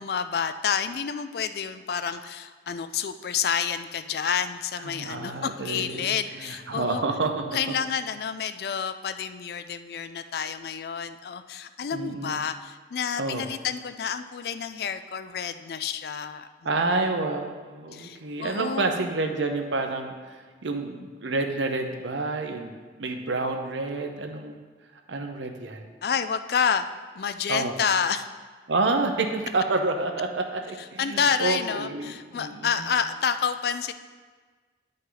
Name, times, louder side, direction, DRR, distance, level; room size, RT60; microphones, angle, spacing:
voice 1, 0.0-7.0 7.5-16.5 16.9-17.0 17.9-19.1 26.0-26.9 27.1-28.3 30.8-33.9, left 7 dB, 60° left, 11 dB, 0.3 m, -29 dB
voice 2, 4.8-6.2 6.4-7.4 11.9-12.4 13.2-13.5 16.6-24.6 25.1-25.9 27.5-27.7 28.7-32.7, right 3 dB, 90° right, 4 dB, 0.8 m, -29 dB
9.7 x 5.3 x 3.9 m, 1.5 s
head